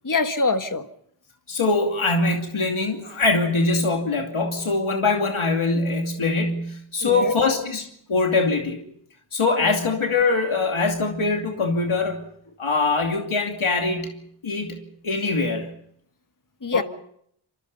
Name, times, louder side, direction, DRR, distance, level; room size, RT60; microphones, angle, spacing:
voice 1, 0.0-0.9 7.0-7.4 16.6-16.8, left 3 dB, 40° left, 8 dB, 1.6 m, -24 dB
voice 2, 1.5-8.8 9.3-12.2 12.6-15.7 16.7-16.8, left 3 dB, 75° left, 2 dB, 2.7 m, -23 dB
26.5 x 23.0 x 5.5 m, 0.69 s
wide cardioid pair, 60°, 49 cm